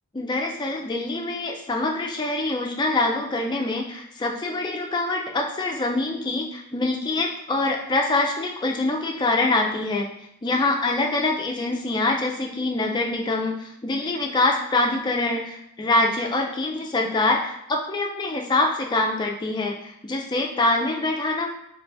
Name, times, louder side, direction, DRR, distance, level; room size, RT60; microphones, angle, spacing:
voice 1, 0.1-10.1 10.4-21.5, left 2 dB, 20° left, 1 dB, 0.3 m, -24 dB
3.3 x 3.0 x 2.6 m, 0.76 s
head